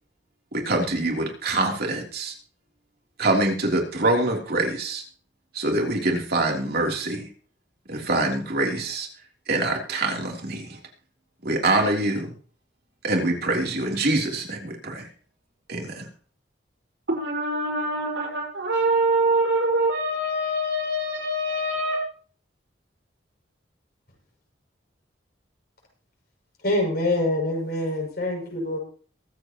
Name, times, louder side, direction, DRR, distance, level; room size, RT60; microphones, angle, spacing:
voice 1, 0.5-2.3 3.2-5.0 5.5-7.3 7.9-9.1 9.5-10.6 11.4-12.3 13.0-15.0 15.7-16.0, right 2 dB, 60° right, 0 dB, 3.3 m, -25 dB
voice 2, 17.1-22.0, right 1 dB, 85° right, -1 dB, 5.1 m, -24 dB
voice 3, 26.6-28.8, left 1 dB, 55° left, -1 dB, 6.9 m, -25 dB
23.0 x 8.4 x 3.1 m, 0.43 s
head